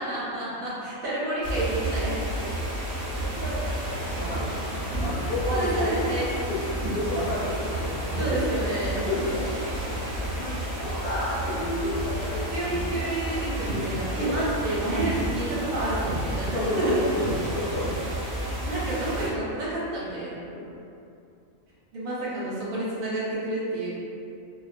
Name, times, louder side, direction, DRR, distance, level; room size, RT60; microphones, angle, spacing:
voice 1, 0.0-2.2 2.8-3.1 5.5-6.3 8.2-9.0 12.5-16.9 18.6-20.4 21.9-23.9, right 1 dB, 80° right, -8 dB, 1.1 m, -30 dB
sound 1, 1.4-19.3, right 1 dB, 55° right, 0.6 m, -31 dB
voice 2, 3.1-4.5 5.0-6.1 6.4-8.6 8.9-9.5 10.0-12.8 13.7-13.8 14.2-14.4 16.5-18.0 20.5-20.7, left 1 dB, 50° left, -8 dB, 0.8 m, -31 dB
2.4 x 2.2 x 2.4 m, 2.5 s
omnidirectional pair, 1.4 m